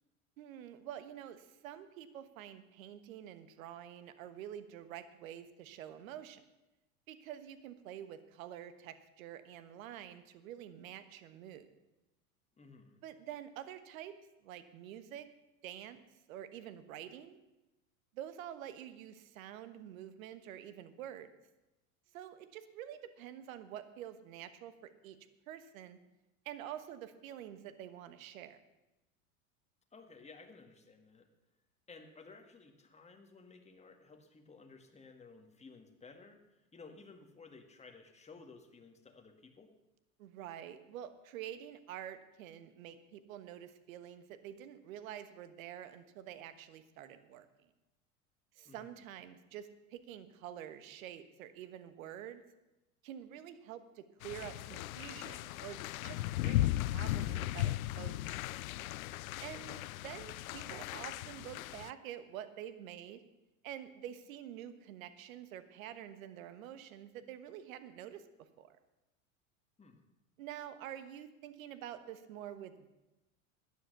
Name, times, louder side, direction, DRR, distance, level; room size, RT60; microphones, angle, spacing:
voice 1, 0.4-6.4 7.1-11.7 13.0-14.1 14.4-15.3 15.6-16.0 16.3-17.4 18.1-21.3 22.1-25.2 25.5-26.0 26.4-28.6 40.2-47.5 48.5-52.4 53.0-58.4 59.4-63.2 63.6-68.2 68.6-68.8 70.4-72.9, right 10 dB, 70° right, 11 dB, 1.4 m, -47 dB
voice 2, 12.6-13.0 29.9-31.3 31.9-39.7 48.7-49.0 59.5-59.9 69.8-70.0, left 4 dB, 15° left, 4 dB, 1.9 m, -56 dB
sound 1, 54.2-61.9, left 15 dB, 80° left, 0.5 m, -37 dB
12.5 x 10.0 x 6.7 m, 0.99 s
hypercardioid pair, 95°, 42 cm